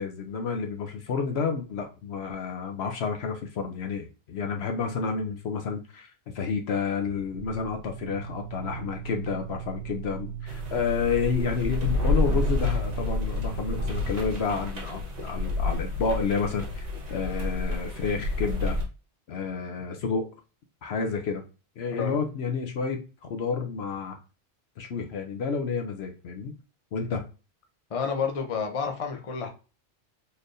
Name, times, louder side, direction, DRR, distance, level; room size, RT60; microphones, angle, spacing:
voice 1, 0.0-18.8 19.3-20.3 20.8-21.4 21.8-24.2 24.8-26.5 26.9-27.2, left 5 dB, 65° left, 4 dB, 0.9 m, -30 dB
sound 1, 7.0-14.1, right 8 dB, 50° right, 0.5 m, -39 dB
sound 2, 10.5-18.8, left 2 dB, 35° right, 1.1 m, -29 dB
voice 2, 27.9-29.5, left 6 dB, 35° left, 4 dB, 0.7 m, -29 dB
4.2 x 3.3 x 2.5 m, 0.33 s
omnidirectional pair, 1.2 m